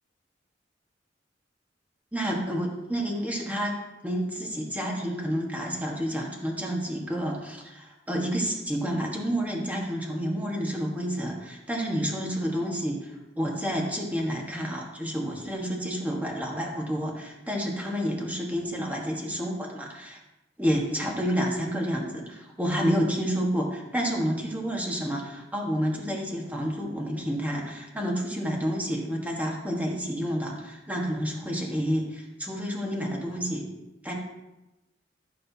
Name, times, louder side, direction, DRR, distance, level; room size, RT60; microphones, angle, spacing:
voice 1, 2.1-3.7 4.0-20.2 20.6-33.6 34.0-34.1, equal, 10° right, -1 dB, 1.5 m, -29 dB
15.5 x 6.7 x 2.8 m, 0.99 s
head